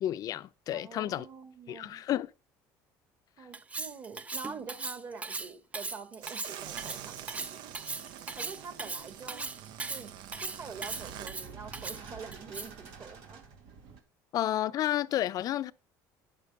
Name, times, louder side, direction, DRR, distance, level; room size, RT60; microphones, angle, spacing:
voice 1, 0.0-1.3 1.7-2.3 14.3-15.7, left 12 dB, 50° left, 0.6 m, -31 dB
voice 2, 0.7-2.0 3.4-7.5 8.4-9.4 9.9-10.1 10.4-13.4, right 5 dB, 40° right, 2.0 m, -46 dB
Cutlery silverware, 3.5-12.9, right 3 dB, 15° right, 0.5 m, -38 dB
sound 1, 6.2-11.3, right 10 dB, 70° right, 0.7 m, -45 dB
sound 2, 7.1-14.0, right 5 dB, 85° right, 2.3 m, -51 dB
10.0 x 6.6 x 5.6 m
cardioid pair, 120°, 8 cm